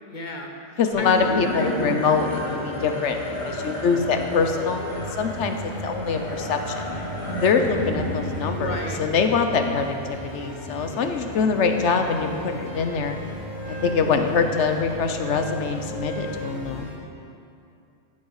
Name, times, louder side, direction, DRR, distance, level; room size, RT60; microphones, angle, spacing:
voice 1, 0.1-0.5 1.0-1.8 8.4-9.0 13.8-14.3, left 2 dB, 40° left, 2 dB, 1.0 m, -31 dB
voice 2, 0.8-3.2 3.4-5.6 5.8-6.9 7.4-13.2 13.8-16.9, left 5 dB, 70° left, 6 dB, 1.1 m, -24 dB
sound 1, 0.9-16.9, equal, 75° right, 3.0 m, -37 dB
sound 2, 1.0-11.5, equal, 25° left, 2.0 m, -33 dB
Wind instrument woodwind instrument, 11.8-16.4, right 1 dB, ahead, 2.9 m, -40 dB
13.5 x 7.1 x 4.8 m, 2.6 s
omnidirectional pair, 1.2 m